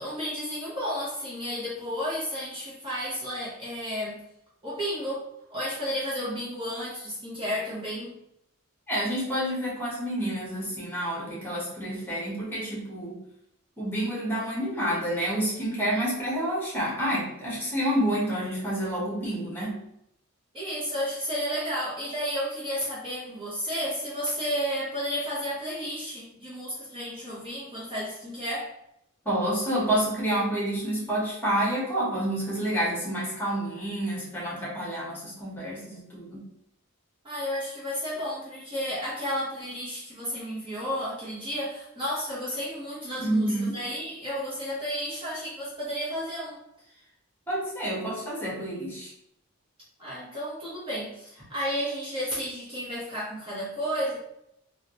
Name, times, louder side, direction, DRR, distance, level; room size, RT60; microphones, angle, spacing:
voice 1, 0.0-4.2 4.6-8.2 20.5-28.7 37.2-46.6 50.0-54.2, equal, 25° right, -8 dB, 1.0 m, -32 dB
voice 2, 8.9-13.2 13.8-19.8 29.2-36.5 43.2-43.8 47.5-49.1, right 1 dB, 10° left, -6 dB, 1.4 m, -29 dB
3.5 x 2.7 x 2.9 m, 0.78 s
head